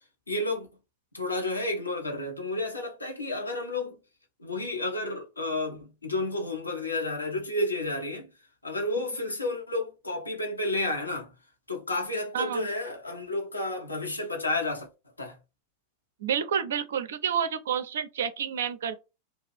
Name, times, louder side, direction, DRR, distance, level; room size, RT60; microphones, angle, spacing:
voice 1, 0.3-0.7 1.1-4.0 4.4-8.3 8.6-11.3 11.7-14.9 15.2-15.4, left 2 dB, 80° left, 0.8 m, -31 dB
voice 2, 12.3-12.7 16.2-19.0, right 8 dB, 60° right, 0.4 m, -29 dB
2.4 x 2.2 x 3.2 m
figure-of-eight pair, 90°, 0 cm